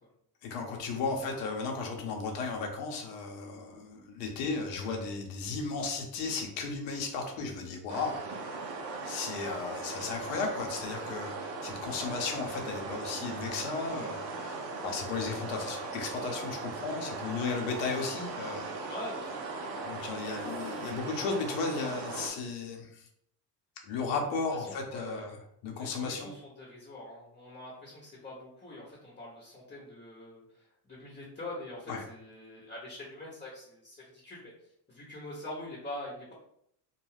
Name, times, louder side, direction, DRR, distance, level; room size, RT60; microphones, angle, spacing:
voice 1, 0.4-8.5 9.0-14.5 14.8-18.7 19.8-23.0 23.8-25.4 25.6-26.3 31.9-32.0, left 4 dB, 70° left, 2 dB, 0.8 m, -35 dB
sound 1, 7.9-22.3, right 3 dB, 90° right, 0.7 m, -39 dB
voice 2, 18.9-19.4 24.6-25.3 25.8-34.5 34.9-36.3, left 1 dB, 15° left, -4 dB, 0.9 m, -44 dB
2.4 x 2.2 x 3.2 m, 0.71 s
hypercardioid pair, 80°, 49 cm